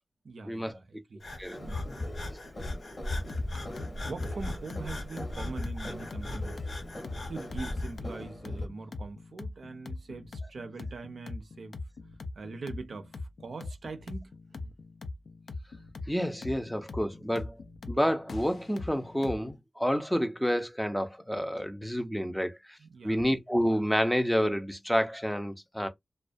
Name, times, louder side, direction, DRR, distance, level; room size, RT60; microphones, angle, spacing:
voice 1, 0.2-1.2 1.6-1.8 3.5-3.6 3.9-6.6 7.3-11.8 12.4-13.1 13.4-14.4 22.8-23.2, right 3 dB, 80° right, 0.4 m, -42 dB
Breathing, 1.2-8.0, left 2 dB, 65° left, 1.2 m, -39 dB
sound 1, 1.5-8.7, left 1 dB, 45° left, 0.8 m, -40 dB
sound 2, 3.3-19.5, left 3 dB, 90° left, 0.4 m, -42 dB
voice 2, 16.1-22.8 23.0-25.9, equal, 5° left, 0.5 m, -29 dB
2.3 x 2.1 x 2.5 m
wide cardioid pair, 75°, 0 cm